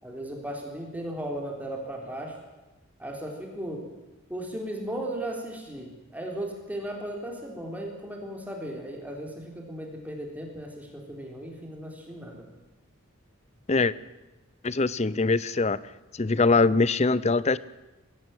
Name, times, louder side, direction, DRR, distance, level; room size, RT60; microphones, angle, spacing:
voice 1, 0.0-2.3 3.0-3.9 4.3-12.5, right 1 dB, 5° right, 1 dB, 3.8 m, -36 dB
voice 2, 14.6-15.8 16.1-17.6, left 3 dB, 30° left, 19 dB, 0.6 m, -22 dB
22.0 x 15.5 x 9.2 m, 1.1 s
head